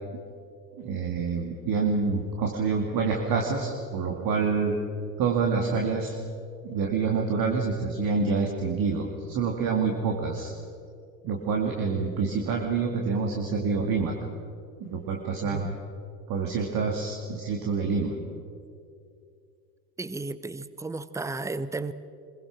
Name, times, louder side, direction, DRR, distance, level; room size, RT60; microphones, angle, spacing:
voice 1, 0.8-4.8 5.2-6.1 6.6-10.5 11.2-14.1 14.8-15.7 16.3-18.1, right 4 dB, 45° right, 1 dB, 2.5 m, -27 dB
voice 2, 20.0-21.9, right 3 dB, 5° right, 15 dB, 0.8 m, -33 dB
25.5 x 22.0 x 6.2 m, 2.4 s
figure-of-eight pair, 70°, 49 cm